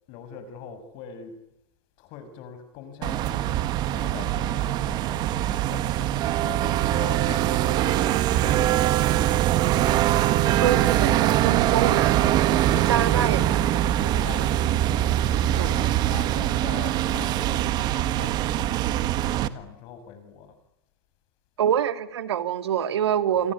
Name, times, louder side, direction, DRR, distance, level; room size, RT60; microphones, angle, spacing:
voice 1, 0.1-1.4 2.0-9.3 11.5-12.3 12.8-13.2 14.0-15.2 15.6-18.8 19.3-20.5 23.3-23.5, left 7 dB, 40° left, 6.3 m, -42 dB
sound 1, 3.0-19.5, right 13 dB, 30° right, 1.4 m, -23 dB
voice 2, 10.6-12.3 12.8-13.6 15.5-15.7 21.6-23.5, right 9 dB, 90° right, 2.7 m, -25 dB
28.5 x 21.5 x 9.7 m
supercardioid pair, 150°, 13 cm